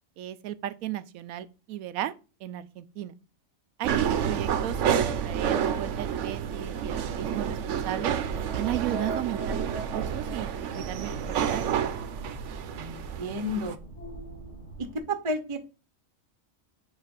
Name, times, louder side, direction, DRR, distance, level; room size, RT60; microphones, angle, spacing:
voice 1, 0.2-2.1 2.4-3.1 3.8-8.1 8.5-11.8, right 13 dB, 90° right, 1.0 m, -35 dB
sound 1, 3.8-13.7, right 8 dB, 65° right, 0.9 m, -30 dB
sound 2, 4.3-15.0, right 2 dB, 55° left, 3.3 m, -41 dB
voice 2, 12.8-13.8 15.1-15.6, equal, 30° right, 0.6 m, -32 dB
7.3 x 3.2 x 5.4 m
omnidirectional pair, 1.4 m